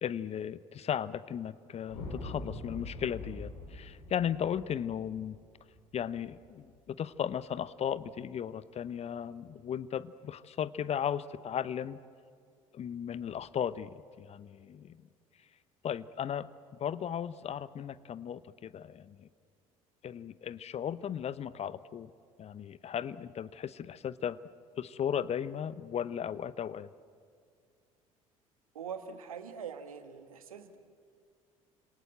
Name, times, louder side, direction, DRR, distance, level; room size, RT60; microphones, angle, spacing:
voice 1, 0.0-5.4 5.9-12.0 12.7-15.0 15.8-16.5 16.8-19.3 20.0-22.1 22.4-24.4 24.8-26.9, left 9 dB, 35° left, 17 dB, 0.9 m, -36 dB
sound 1, 1.9-6.3, left 2 dB, 70° left, 8.0 m, -44 dB
voice 2, 28.8-30.8, right 7 dB, 75° right, 9 dB, 1.7 m, -43 dB
29.0 x 26.5 x 7.7 m, 2.2 s
figure-of-eight pair, 60°, 18 cm